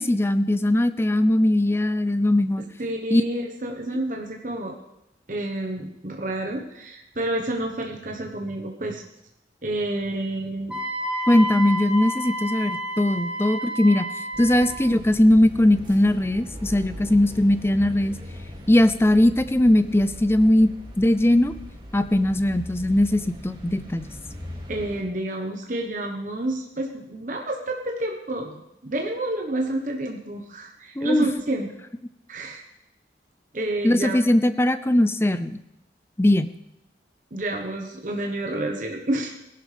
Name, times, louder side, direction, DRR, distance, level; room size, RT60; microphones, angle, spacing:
voice 1, 0.0-2.6 3.1-3.2 11.3-14.0 14.4-18.1 18.7-21.5 21.9-24.1 31.0-31.2 33.8-35.6 36.2-36.5, left 1 dB, 15° left, 12 dB, 0.5 m, -20 dB
voice 2, 2.8-4.8 5.3-9.0 9.6-10.8 24.7-31.7 32.3-32.6 33.5-34.2 37.3-39.3, right 1 dB, 45° right, 1 dB, 1.2 m, -29 dB
Wind instrument woodwind instrument, 10.7-14.8, equal, 5° right, 2.8 m, -30 dB
sound 1, 14.3-25.0, equal, 25° right, 2.4 m, -40 dB
18.0 x 11.5 x 3.4 m, 0.86 s
head